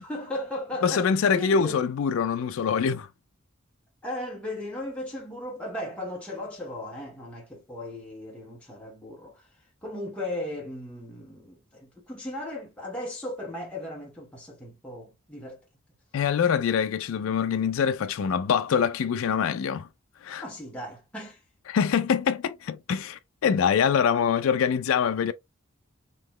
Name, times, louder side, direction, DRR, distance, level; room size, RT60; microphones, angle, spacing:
voice 1, 0.0-1.8 4.0-9.5 9.8-15.6 20.4-21.4, left 1 dB, 5° left, 1.0 m, -36 dB
voice 2, 0.8-3.1 16.1-19.9 20.2-20.4 21.7-25.3, left 7 dB, 80° left, 0.3 m, -24 dB
3.8 x 3.0 x 3.1 m
head